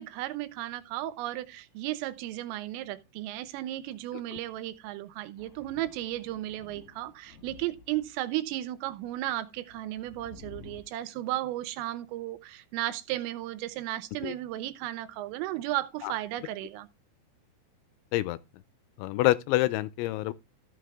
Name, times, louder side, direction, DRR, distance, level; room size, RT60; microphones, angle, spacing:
voice 1, 0.0-16.9, right 15 dB, 85° right, 3.5 m, -34 dB
Thunder, 5.4-8.3 8.9-10.8, left 6 dB, 45° left, 2.0 m, -52 dB
voice 2, 19.0-20.3, left 17 dB, 80° left, 2.8 m, -26 dB
14.5 x 6.0 x 3.5 m
omnidirectional pair, 5.7 m